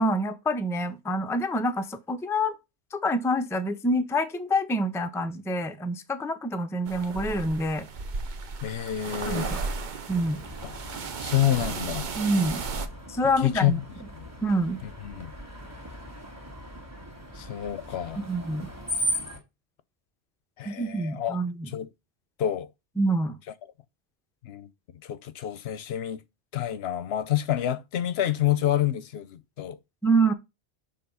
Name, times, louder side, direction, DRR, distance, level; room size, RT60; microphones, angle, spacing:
voice 1, 0.0-2.5 2.9-7.9 9.3-9.6 10.1-10.4 12.1-12.6 13.1-13.8 14.4-14.8 18.2-18.7 20.6-21.7 23.0-23.4 30.0-30.3, right 1 dB, 5° left, 0.5 m, -26 dB
Tropical beach waves on pebbled shore, 6.9-12.9, right 4 dB, 50° right, 0.8 m, -34 dB
voice 2, 8.6-9.5 10.6-10.7 11.2-12.1 13.4-13.8 14.8-15.3 17.3-18.2 20.6-21.4 21.7-21.9 22.4-22.7 24.4-24.7 25.0-26.2 26.5-29.8, left 12 dB, 70° left, 0.8 m, -28 dB
Screech, 10.1-19.4, equal, 15° right, 1.7 m, -38 dB
6.8 x 3.6 x 5.4 m
omnidirectional pair, 1.1 m